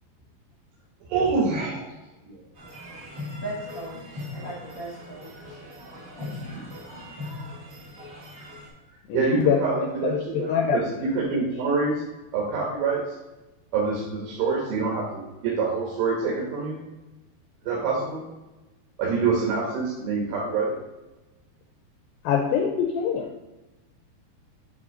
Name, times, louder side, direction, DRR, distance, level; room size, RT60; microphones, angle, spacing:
voice 1, 1.1-1.9 2.2-2.4 6.5-6.7 9.1-10.5 11.1-12.0 12.3-13.1 13.7-16.8 17.7-18.3 19.0-20.8, right 4 dB, 80° right, -4 dB, 3.5 m, -26 dB
sound 1, 2.5-8.7, left 2 dB, 50° right, 1.2 m, -40 dB
voice 2, 3.3-5.6 6.2-6.4 7.0-7.1, right 1 dB, 60° left, -6 dB, 1.1 m, -38 dB
voice 3, 9.1-11.1 22.2-23.3, left 7 dB, 85° left, 2 dB, 2.1 m, -25 dB
10.5 x 3.6 x 3.8 m, 1.1 s
omnidirectional pair, 4.8 m